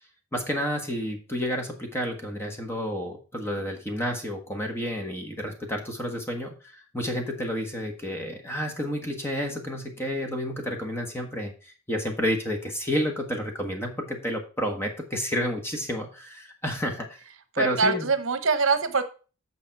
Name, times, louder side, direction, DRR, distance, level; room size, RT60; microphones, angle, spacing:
voice 1, 0.3-17.2 17.6-18.1, equal, 10° left, 3 dB, 1.4 m, -30 dB
voice 2, 17.5-19.0, right 4 dB, 65° right, 10 dB, 0.9 m, -23 dB
8.5 x 6.0 x 4.6 m, 0.36 s
head